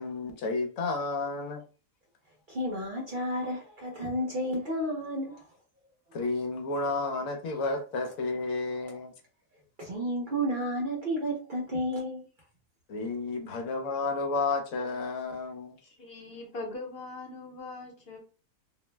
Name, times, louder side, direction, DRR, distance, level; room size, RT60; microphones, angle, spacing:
voice 1, 0.0-1.6 6.1-9.1 12.9-15.8, left 3 dB, 75° left, 1.0 m, -31 dB
voice 2, 2.5-5.5 9.8-12.2, equal, 45° right, 0.7 m, -31 dB
voice 3, 15.8-18.2, left 2 dB, 50° left, 0.9 m, -41 dB
2.6 x 2.0 x 3.2 m
omnidirectional pair, 1.5 m